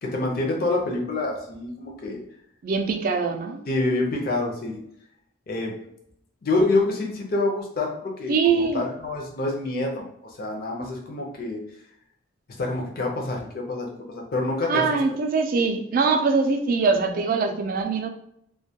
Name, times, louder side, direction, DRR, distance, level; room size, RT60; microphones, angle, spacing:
voice 1, 0.0-2.2 3.7-4.8 5.5-5.7 6.4-11.6 12.6-14.8, left 2 dB, 50° left, 0 dB, 0.5 m, -27 dB
voice 2, 2.6-3.6 8.3-8.8 14.7-18.1, right 4 dB, 45° right, 4 dB, 0.3 m, -23 dB
2.2 x 2.2 x 2.7 m, 0.73 s
head